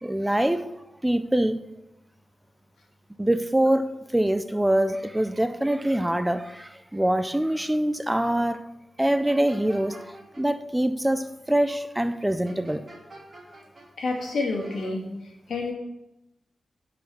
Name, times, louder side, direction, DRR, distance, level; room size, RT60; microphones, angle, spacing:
voice 1, 0.0-0.6 1.0-1.7 3.2-8.7 9.0-12.8, right 1 dB, 10° right, 0.4 m, -24 dB
sound 1, 9.0-10.4 12.4-13.9 14.1-14.9, right 2 dB, 30° right, 2.8 m, -47 dB
voice 2, 14.0-15.1 15.5-15.7, left 3 dB, 80° left, 2.5 m, -28 dB
9.6 x 5.1 x 7.1 m
wide cardioid pair, 120°, 0 cm